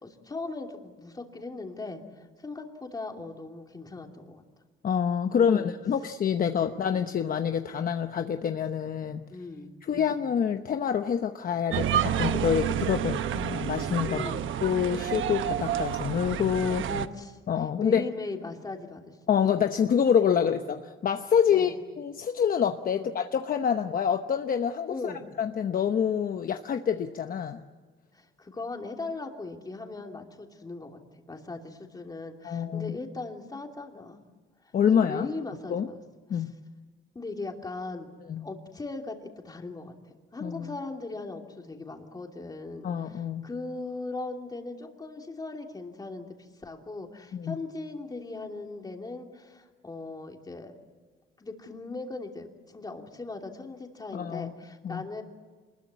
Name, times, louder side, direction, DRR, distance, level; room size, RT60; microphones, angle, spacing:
voice 1, 0.0-4.4 5.3-5.7 9.3-10.2 14.1-14.5 16.8-19.2 20.3-20.5 21.5-21.8 22.9-23.1 24.9-25.2 28.1-34.2 34.6-36.0 36.3-36.4 37.1-39.9 40.3-50.8 51.4-55.2, left 3 dB, 20° left, 3 dB, 2.9 m, -39 dB
voice 2, 4.8-9.2 9.8-14.2 14.6-16.9 17.5-18.0 19.3-20.8 21.0-27.6 32.4-32.9 34.7-35.3 35.7-35.9 36.3-36.5 38.3-38.5 40.4-40.8 42.8-43.5 47.3-47.6 54.1-54.5 54.8-55.0, left 8 dB, 45° left, 7 dB, 0.9 m, -27 dB
sound 1, 11.7-17.1, right 10 dB, 75° right, 1.0 m, -29 dB
27.0 x 21.0 x 8.3 m, 1.4 s
cardioid pair, 150°, 21 cm